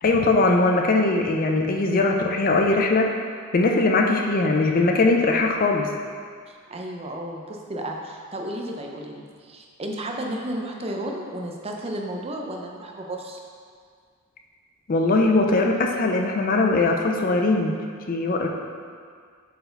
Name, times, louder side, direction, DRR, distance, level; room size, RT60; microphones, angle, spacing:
voice 1, 0.0-3.1 3.5-5.9 14.9-17.7 18.1-18.5, left 2 dB, 40° left, 2 dB, 0.4 m, -20 dB
voice 2, 6.5-13.4, right 1 dB, 25° right, 1 dB, 0.5 m, -33 dB
7.5 x 4.7 x 3.4 m, 2.1 s
head